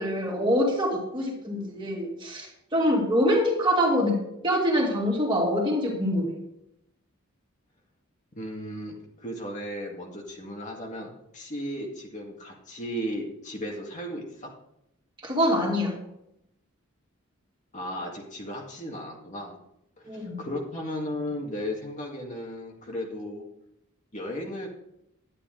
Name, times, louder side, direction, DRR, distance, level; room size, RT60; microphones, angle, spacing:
voice 1, 0.0-4.2 4.4-6.3 15.2-15.9 20.1-20.4, equal, 20° right, -1 dB, 2.6 m, -25 dB
voice 2, 8.4-14.5 17.7-19.5 20.0-23.5 24.1-24.7, equal, 35° left, 0 dB, 1.9 m, -35 dB
11.0 x 10.0 x 3.8 m, 0.80 s
head